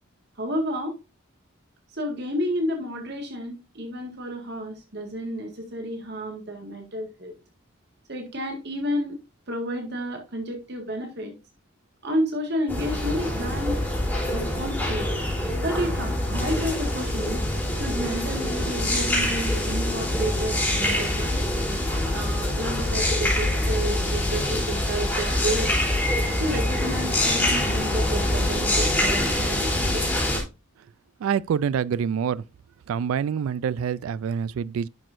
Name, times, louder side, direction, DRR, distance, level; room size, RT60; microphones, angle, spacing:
voice 1, 0.4-1.0 1.9-7.3 8.1-9.2 9.5-11.4 12.0-13.8 14.3-15.1 15.6-17.4 17.7-21.4 22.0-25.8 26.4-30.0, equal, 55° right, 1.8 m, -31 dB
sound 1, 12.7-30.4, left 1 dB, 10° left, 3.8 m, -25 dB
voice 2, 31.2-32.4 32.9-34.9, right 7 dB, 85° right, 0.3 m, -26 dB
11.0 x 6.1 x 2.6 m
head